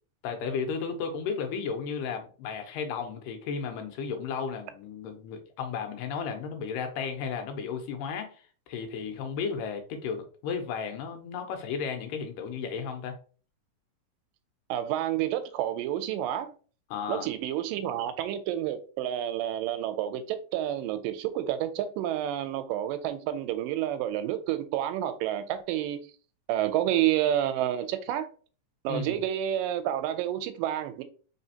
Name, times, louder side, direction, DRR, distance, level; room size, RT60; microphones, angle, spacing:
voice 1, 0.2-13.2 16.9-17.3 28.9-29.2, left 6 dB, 85° left, 2.4 m, -34 dB
voice 2, 14.7-16.5 17.1-26.0 26.5-28.3 28.8-31.0, right 11 dB, 85° right, 2.2 m, -29 dB
4.9 x 3.3 x 2.8 m
omnidirectional pair, 3.9 m